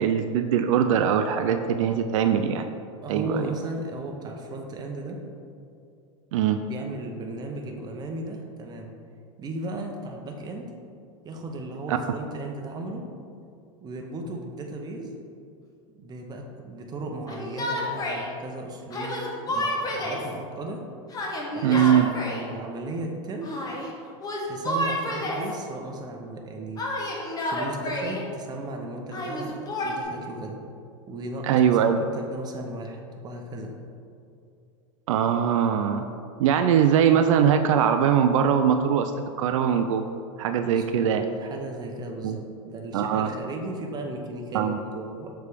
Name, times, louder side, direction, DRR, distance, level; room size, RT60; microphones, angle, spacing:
voice 1, 0.0-2.7 3.1-3.5 6.3-6.6 11.9-12.0 21.6-22.1 31.4-32.0 35.1-36.1 36.4-39.1 39.4-40.0 40.4-41.2 42.2-42.4 42.9-43.3 44.5-44.8, right 8 dB, 70° right, 7 dB, 0.4 m, -21 dB
voice 2, 3.0-5.2 6.6-8.9 9.4-10.7 11.2-13.1 13.8-15.1 15.9-20.8 21.5-23.6 24.5-26.9 27.4-30.6 31.1-33.8 40.6-45.3, right 1 dB, 25° right, 2 dB, 0.8 m, -36 dB
Yell, 17.3-18.3 18.9-20.3 21.1-22.4 23.4-23.9 24.2-25.5 26.8-28.2 29.1-30.0, left 1 dB, 20° left, 1.0 m, -30 dB
6.6 x 3.4 x 5.0 m, 2.5 s
supercardioid pair, 125°, 17 cm